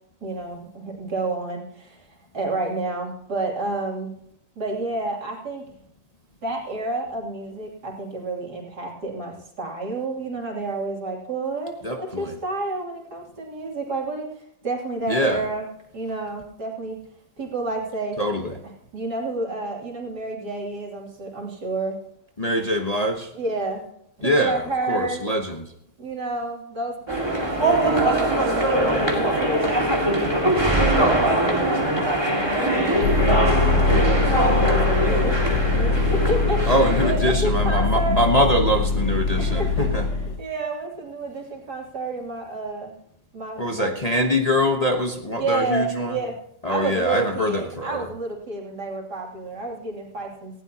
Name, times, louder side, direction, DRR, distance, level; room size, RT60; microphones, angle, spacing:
voice 1, 0.2-2.1 2.3-4.1 4.6-5.6 6.4-15.6 15.9-17.0 17.4-18.5 18.9-22.0 23.3-23.8 24.2-25.2 26.0-29.8 30.8-31.9 32.6-33.2 33.7-34.3 34.6-36.7 37.0-38.2 39.4-42.9 43.3-43.9 45.3-46.3 46.7-50.6, right 2 dB, 60° right, -1 dB, 3.6 m, -30 dB
voice 2, 11.8-12.3 15.1-15.5 18.2-18.5 22.4-23.3 24.2-25.7 36.7-40.1 43.6-46.2 46.6-48.1, equal, 25° left, 2 dB, 1.1 m, -23 dB
sound 1, 27.1-37.2, right 1 dB, 15° right, 2.3 m, -22 dB
Vehicle, 33.0-40.4, left 3 dB, 80° left, 1.5 m, -22 dB
18.5 x 16.0 x 2.9 m, 0.74 s
omnidirectional pair, 2.0 m